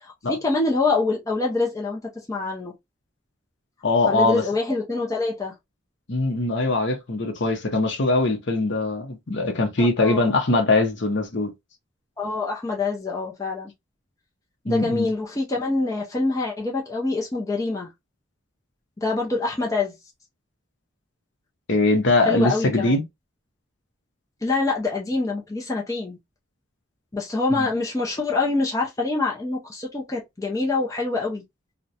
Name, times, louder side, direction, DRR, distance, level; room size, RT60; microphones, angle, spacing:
voice 1, 0.0-2.7 4.1-5.5 9.8-10.3 12.2-13.7 14.6-17.9 19.0-20.0 22.2-23.0 24.4-26.2 27.1-31.4, left 3 dB, 15° left, 0.4 m, -25 dB
voice 2, 3.8-4.4 6.1-11.5 14.7-15.1 21.7-23.0 27.5-27.7, left 2 dB, 55° left, 0.6 m, -22 dB
2.4 x 2.1 x 2.6 m
head